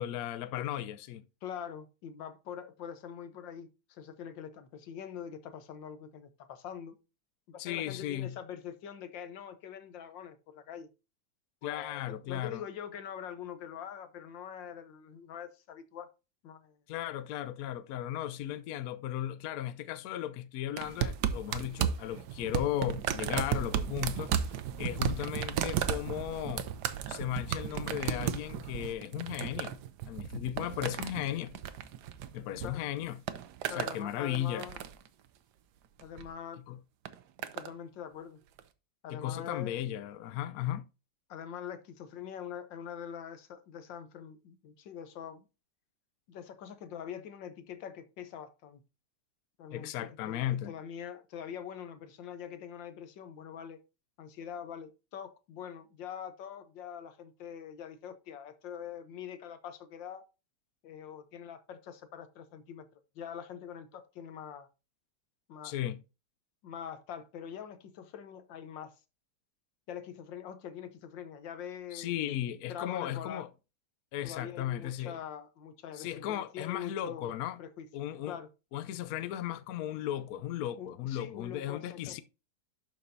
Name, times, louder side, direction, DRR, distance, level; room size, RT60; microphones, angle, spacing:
voice 1, 0.0-1.2 7.6-8.3 11.6-12.6 16.9-24.4 24.8-26.7 27.1-29.8 30.1-31.6 32.3-33.2 33.7-34.7 36.7-36.8 39.1-40.9 49.7-50.7 65.6-66.0 71.9-73.5 74.1-75.2 75.9-77.6 77.9-78.4 78.7-82.2, left 12 dB, 70° left, 0.9 m, -36 dB
voice 2, 1.4-7.0 7.5-10.9 11.6-16.1 16.4-16.8 32.6-32.9 33.7-34.9 36.0-36.6 37.5-38.4 39.0-40.0 41.3-45.5 46.3-48.8 49.6-53.8 54.2-60.2 60.8-64.7 65.5-65.8 66.6-68.9 69.9-72.2 72.7-73.4 74.2-77.3 77.6-77.9 78.3-78.5 80.8-82.2, left 8 dB, 85° left, 1.7 m, -44 dB
sound 1, 20.8-32.7 33.0-34.0 34.3-35.1 36.0-36.3 37.0-37.7 38.6-38.7, right 9 dB, 70° right, 1.2 m, -34 dB
11.5 x 5.2 x 2.7 m
omnidirectional pair, 1.9 m